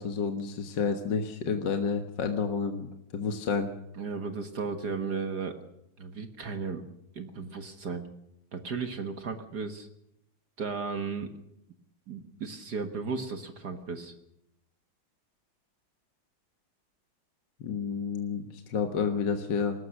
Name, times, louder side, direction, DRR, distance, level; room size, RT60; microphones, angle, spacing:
voice 1, 0.0-2.9 3.1-3.7 17.6-19.9, left 5 dB, 60° left, 6 dB, 2.0 m, -30 dB
voice 2, 4.0-5.6 6.0-6.8 7.1-8.1 8.5-9.9 10.6-11.3 12.1-14.1, right 5 dB, 55° right, 7 dB, 2.0 m, -35 dB
21.5 x 19.0 x 6.4 m, 0.80 s
omnidirectional pair, 2.2 m